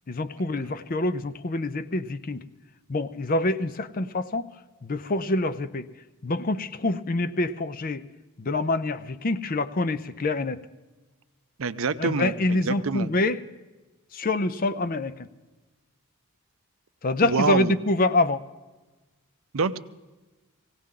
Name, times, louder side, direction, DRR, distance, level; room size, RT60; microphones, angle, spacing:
voice 1, 0.1-2.4 2.9-4.5 4.8-5.9 6.2-8.0 8.4-10.6 12.0-13.4 14.1-15.3 17.0-18.4, left 2 dB, 40° left, 13 dB, 0.5 m, -26 dB
voice 2, 11.6-13.1 17.2-17.7 19.5-19.8, right 4 dB, 60° right, 13 dB, 0.6 m, -26 dB
19.0 x 17.0 x 3.8 m, 1.2 s
head